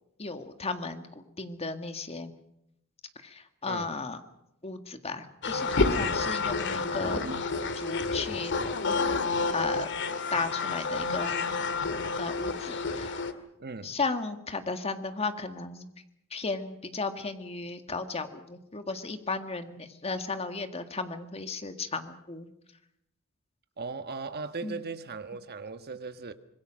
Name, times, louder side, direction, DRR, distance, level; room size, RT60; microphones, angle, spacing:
voice 1, 0.2-2.3 3.2-4.2 4.6-7.3 7.8-8.5 9.5-9.9 10.3-11.5 12.2-13.3 13.8-15.9 16.3-22.5 24.6-24.8, left 3 dB, 30° left, 1.9 m, -35 dB
sound 1, 5.4-13.3, left 4 dB, 60° left, 1.9 m, -29 dB
voice 2, 6.9-7.5 13.6-14.0 23.8-26.3, right 4 dB, 50° right, 1.4 m, -38 dB
25.5 x 21.5 x 6.4 m
head